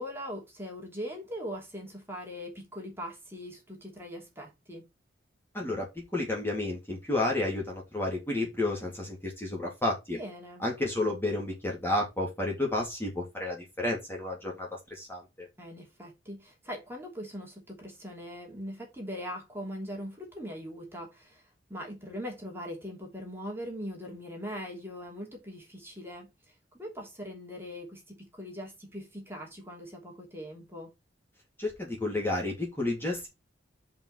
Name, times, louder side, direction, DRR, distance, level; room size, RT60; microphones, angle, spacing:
voice 1, 0.0-4.9 10.1-10.6 15.6-30.9, equal, 10° right, 2.9 m, -41 dB
voice 2, 5.5-5.9 6.1-10.2 10.6-15.5 31.6-33.3, left 2 dB, 10° left, 2.7 m, -31 dB
5.5 x 5.3 x 6.5 m
head